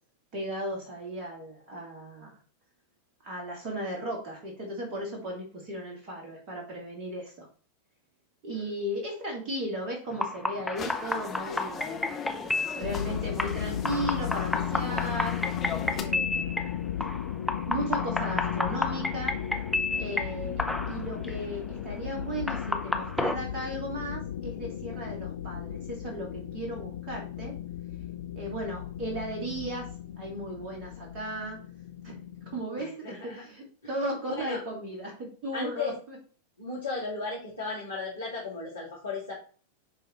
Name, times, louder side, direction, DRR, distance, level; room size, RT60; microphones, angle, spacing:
voice 1, 0.3-2.4 3.2-7.5 8.4-12.0 12.7-15.4 16.0-16.8 17.7-19.4 20.0-27.5 28.4-29.9 30.2-31.6 32.0-32.2 32.5-36.2, right 1 dB, 35° right, -1 dB, 2.2 m, -36 dB
sound 1, 10.1-23.3, left 2 dB, ahead, 0.8 m, -32 dB
sound 2, 10.8-16.0, left 7 dB, 25° left, 1.0 m, -40 dB
sound 3, 12.8-32.6, left 10 dB, 60° left, 0.4 m, -35 dB
voice 2, 32.8-33.5 34.4-34.6 35.5-35.9 36.6-39.3, left 4 dB, 75° left, -6 dB, 2.3 m, -35 dB
10.5 x 3.8 x 3.1 m, 0.41 s
figure-of-eight pair, 90°, 0 cm